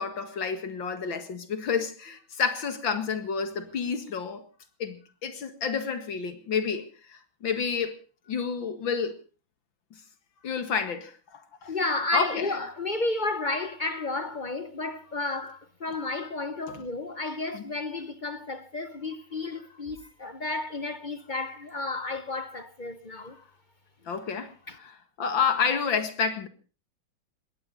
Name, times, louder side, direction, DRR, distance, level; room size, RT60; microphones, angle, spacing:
voice 1, 0.0-4.4 4.8-7.9 8.3-9.1 10.4-11.7 12.1-12.6 16.7-16.8 17.5-17.6 24.1-26.5, left 6 dB, 70° left, 2.6 m, -30 dB
voice 2, 11.7-23.4 24.7-24.8, left 2 dB, 40° left, 0.7 m, -32 dB
20.5 x 17.0 x 4.0 m
omnidirectional pair, 2.2 m